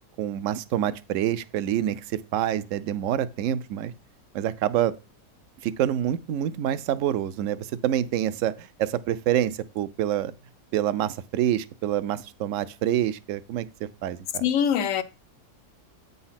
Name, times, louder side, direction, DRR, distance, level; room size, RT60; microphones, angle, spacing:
voice 1, 0.2-3.9 4.3-4.9 5.6-10.3 10.7-13.7 14.0-14.4, right 11 dB, 70° right, 0.8 m, -27 dB
voice 2, 14.4-15.0, left 8 dB, 65° left, 0.9 m, -23 dB
8.7 x 4.1 x 5.7 m
omnidirectional pair, 1.7 m